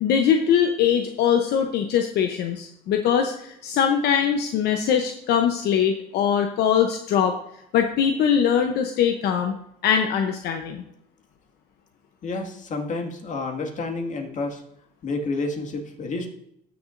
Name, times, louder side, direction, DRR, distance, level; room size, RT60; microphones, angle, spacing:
voice 1, 0.0-7.4 7.7-9.5 9.8-10.8, left 8 dB, 75° left, 5 dB, 0.8 m, -22 dB
voice 2, 12.2-14.6 15.0-16.3, left 3 dB, 45° left, 2 dB, 1.9 m, -29 dB
15.5 x 6.9 x 2.6 m, 0.76 s
cardioid pair, 110°, 17 cm